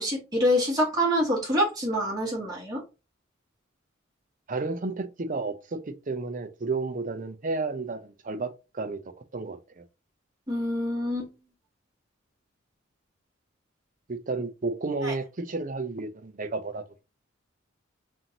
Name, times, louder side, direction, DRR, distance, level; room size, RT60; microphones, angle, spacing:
voice 1, 0.0-2.8 10.5-11.3 15.0-15.1, equal, 20° right, 1.9 m, -26 dB
voice 2, 4.5-9.8 14.1-17.0, right 3 dB, 40° right, 0.6 m, -32 dB
5.5 x 2.6 x 2.9 m
head